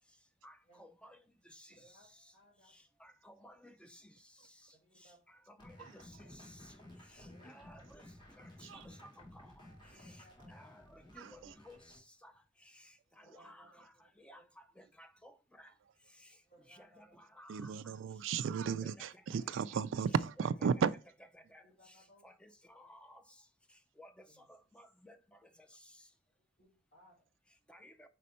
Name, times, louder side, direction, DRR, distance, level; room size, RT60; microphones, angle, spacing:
voice 1, 0.1-19.8 21.3-26.2 27.5-28.1, left 1 dB, 5° left, 0.5 m, -59 dB
voice 2, 0.6-1.1 1.7-2.8 4.7-5.5 7.1-7.9 9.9-10.9 13.0-14.0 14.4-14.5 16.4-17.3 21.4-22.9 24.3-24.4 26.2-27.3, right 1 dB, 60° left, 2.3 m, -66 dB
sound 1, 5.6-12.0, left 1 dB, 25° left, 1.7 m, -56 dB
voice 3, 11.2-11.5 17.5-21.0, right 6 dB, 85° right, 0.3 m, -34 dB
5.2 x 4.3 x 4.2 m
head